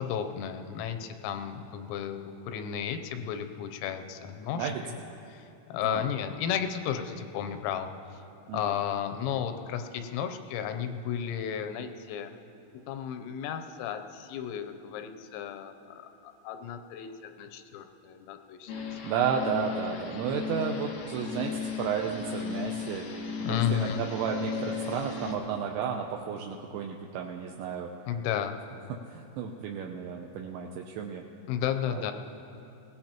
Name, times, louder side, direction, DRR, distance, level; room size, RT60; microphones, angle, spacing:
voice 1, 0.0-5.0 5.3-8.2 8.5-12.3 12.9-19.1 23.4-24.0 28.1-28.6 31.5-32.1, left 9 dB, 90° left, 7 dB, 3.4 m, -33 dB
sound 1, 18.7-25.3, left 5 dB, 75° left, 1.8 m, -35 dB
voice 2, 19.0-23.1 23.5-27.9 28.9-31.2 31.9-32.1, right 7 dB, 85° right, 1 dB, 2.6 m, -33 dB
22.5 x 17.5 x 3.0 m, 2.8 s
omnidirectional pair, 5.9 m